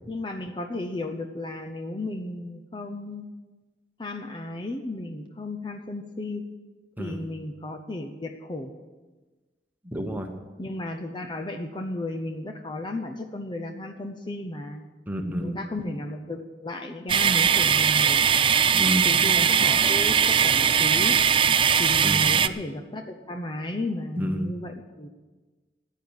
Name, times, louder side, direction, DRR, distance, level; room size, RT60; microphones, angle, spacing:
voice 1, 0.1-3.3 4.0-6.5 7.0-8.7 10.6-14.8 15.4-18.2 19.0-21.2 21.8-25.1, left 2 dB, 25° left, 4 dB, 0.7 m, -34 dB
voice 2, 9.8-10.3 15.1-15.6 18.7-19.2 22.0-22.4 24.2-24.5, equal, 10° right, 4 dB, 1.2 m, -30 dB
sound 1, 17.1-22.5, right 7 dB, 30° right, 0.4 m, -20 dB
14.5 x 9.3 x 7.2 m, 1.3 s
head